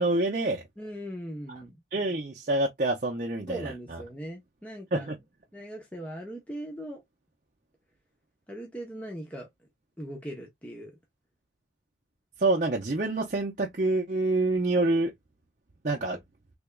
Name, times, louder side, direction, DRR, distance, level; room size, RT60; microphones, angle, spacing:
voice 1, 0.0-0.6 1.9-4.0 4.9-5.2 12.4-15.1 15.8-16.2, right 2 dB, 45° right, 0.7 m, -27 dB
voice 2, 0.8-1.8 3.5-5.1 5.5-7.0 8.5-9.5 10.0-11.0, right 1 dB, 10° left, 0.8 m, -39 dB
3.4 x 3.3 x 2.3 m
head